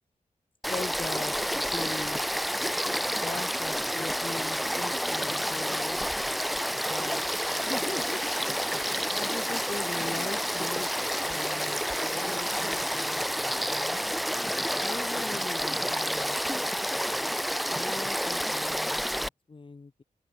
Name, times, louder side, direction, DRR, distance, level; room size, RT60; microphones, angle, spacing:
Frog / Stream, 0.6-19.3, equal, ahead, 5.8 m, -29 dB
voice 1, 0.7-1.3 1.7-2.2 3.2-6.0 6.9-8.2 9.2-10.9 11.2-14.0 14.8-16.4 17.7-20.0, left 3 dB, 35° left, 3.8 m, -41 dB
open air
wide cardioid pair, 125°, 14 cm